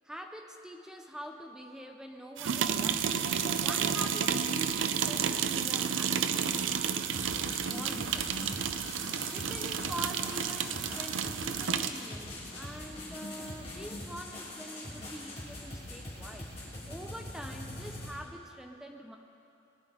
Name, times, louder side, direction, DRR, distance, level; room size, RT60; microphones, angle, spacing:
voice 1, 0.0-3.2 3.6-9.0 9.3-16.5 16.8-19.2, equal, 5° right, 3 dB, 0.6 m, -45 dB
sound 1, 2.4-12.0, right 7 dB, 85° right, 0.5 m, -31 dB
sound 2, 7.1-18.1, left 1 dB, 30° left, 3.2 m, -43 dB
19.5 x 10.5 x 4.9 m, 2.7 s
head